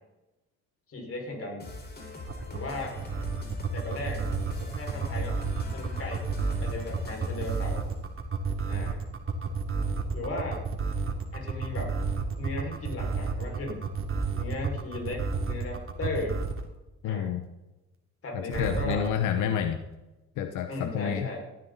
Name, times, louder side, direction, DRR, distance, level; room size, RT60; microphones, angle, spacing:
voice 1, 0.9-1.7 2.5-3.0 3.7-4.2 4.6-5.4 5.7-6.2 6.6-7.9 8.7-9.0 10.1-10.6 11.3-12.0 12.4-13.9 14.3-16.4 17.0-17.3 18.2-19.1 20.7-21.4, left 2 dB, 50° left, 1 dB, 5.6 m, -36 dB
sound 1, 1.6-7.9, left 2 dB, 30° left, 4.8 m, -42 dB
sound 2, 2.3-16.7 18.5-19.1, right 5 dB, 45° right, 2.8 m, -31 dB
voice 2, 17.0-17.4 18.3-19.8 20.4-21.3, left 9 dB, 90° left, 7 dB, 1.0 m, -29 dB
18.0 x 14.0 x 4.1 m, 1.0 s
cardioid pair, 90°, 30 cm